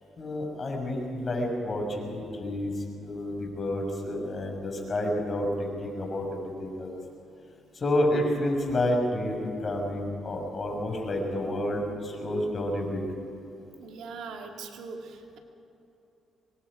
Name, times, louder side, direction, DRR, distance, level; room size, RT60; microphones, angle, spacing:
voice 1, 0.2-2.7 3.0-6.9 7.7-13.0, left 1 dB, 35° left, 1 dB, 6.3 m, -29 dB
voice 2, 13.8-15.4, right 4 dB, 80° right, 2 dB, 2.5 m, -41 dB
25.5 x 22.5 x 5.1 m, 2.9 s
cardioid pair, 90°, 0 cm